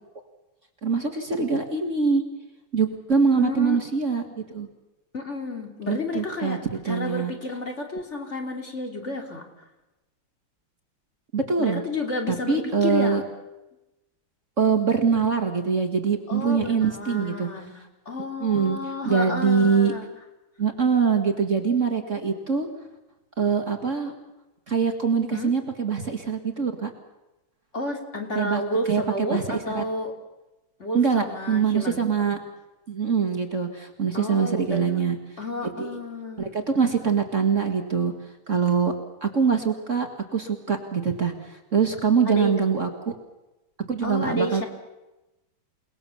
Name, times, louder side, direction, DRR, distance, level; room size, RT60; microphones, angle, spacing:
voice 1, 0.8-2.2 2.7-4.2 4.5-4.7 5.9-6.6 6.8-7.3 11.3-11.8 12.3-13.2 14.6-17.5 18.4-18.8 19.0-19.9 20.6-22.7 23.4-24.1 24.7-26.9 28.3-28.6 28.9-29.0 29.3-29.8 30.9-32.4 32.9-35.2 35.6-36.0 36.4-38.1 38.5-38.9 39.2-43.2 43.9-44.6, right 6 dB, 40° right, 5 dB, 2.2 m, -23 dB
voice 2, 3.3-3.8 5.1-6.6 6.9-9.4 11.6-13.2 16.3-17.7 18.1-20.1 25.3-25.5 27.7-30.1 30.8-32.0 34.1-35.0 35.4-36.5 42.3-42.5 44.0-44.7, left 2 dB, 35° left, 3 dB, 3.3 m, -31 dB
29.5 x 19.5 x 7.1 m, 1.0 s
omnidirectional pair, 2.2 m